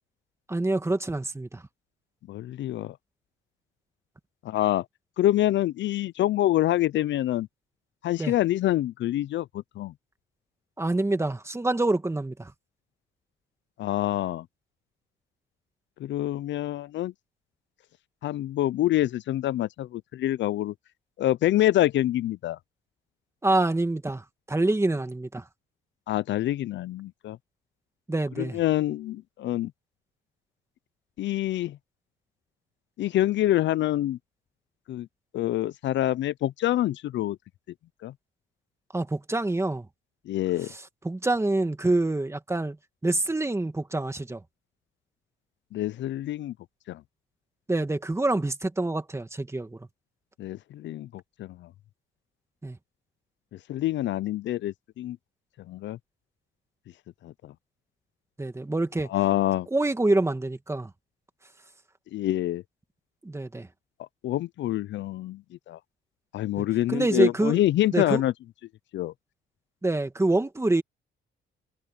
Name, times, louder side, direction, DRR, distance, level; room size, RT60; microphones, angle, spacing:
voice 1, 0.5-1.6 8.2-8.3 10.8-12.5 23.4-25.4 28.1-28.6 38.9-39.9 41.0-42.8 43.0-44.4 47.7-49.9 52.6-52.8 58.4-59.1 59.7-60.9 63.2-63.7 66.6-67.6 67.9-68.2 69.8-70.8, right 2 dB, 15° right, 2.1 m, -26 dB
voice 2, 2.3-3.0 4.4-4.9 5.2-7.5 8.0-9.9 13.8-14.5 16.0-17.1 18.2-20.7 21.2-22.6 26.1-27.4 28.4-29.7 31.2-31.8 33.0-34.2 34.9-35.1 35.3-37.4 38.0-38.1 40.3-40.7 45.7-46.5 46.9-47.0 50.4-51.7 53.5-55.2 55.7-56.0 57.2-57.5 59.1-59.7 62.1-62.6 64.0-65.8 66.3-68.3 68.9-69.1, left 14 dB, 70° left, 0.5 m, -26 dB
cardioid pair, 90°, 20 cm